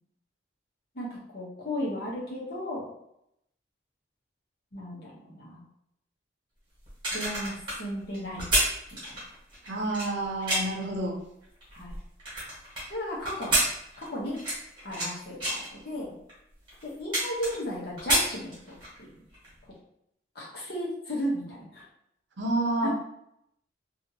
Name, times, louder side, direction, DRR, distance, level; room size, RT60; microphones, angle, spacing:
voice 1, 0.9-2.9 4.7-5.6 7.1-8.4 9.0-9.2 11.7-11.9 12.9-13.6 14.0-14.4 14.8-16.1 16.8-19.1 19.6-19.7 20.3-21.9 22.8-22.9, equal, 55° left, -5 dB, 0.9 m, -35 dB
sound 1, 6.9-10.9 11.4-12.8 13.2-15.1 15.4-15.7 16.3-16.4 16.7-17.7 18.0-19.0 19.3-19.5, right 1 dB, 25° right, 1.3 m, -29 dB
voice 2, 9.7-11.1 22.4-22.9, right 2 dB, 75° right, 0 dB, 0.7 m, -29 dB
2.8 x 2.5 x 2.7 m, 0.77 s
head